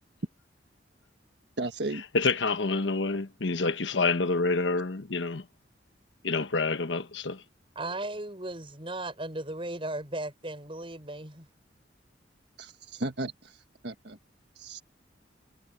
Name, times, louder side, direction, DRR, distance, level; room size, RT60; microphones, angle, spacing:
voice 1, 1.6-2.0 12.6-13.6 13.8-14.2 14.6-14.8, right 2 dB, 65° right, 1.6 m, -35 dB
voice 2, 2.1-5.4 6.2-7.4, left 3 dB, 85° left, 1.2 m, -27 dB
voice 3, 7.8-11.5, right 2 dB, 30° right, 7.0 m, -36 dB
head